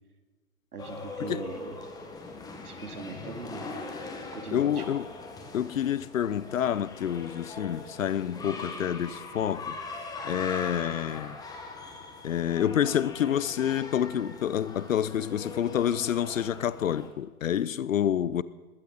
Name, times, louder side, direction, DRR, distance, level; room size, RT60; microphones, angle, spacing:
voice 1, 0.7-1.8 2.6-3.7 4.3-4.9, right 5 dB, 75° right, 2.9 m, -40 dB
sound 1, 0.8-17.1, left 3 dB, 10° left, 1.6 m, -41 dB
voice 2, 4.5-5.1 5.5-9.8 10.2-11.4 12.2-18.4, left 10 dB, 60° left, 0.8 m, -28 dB
20.5 x 15.0 x 4.1 m
hypercardioid pair, 135°, 45 cm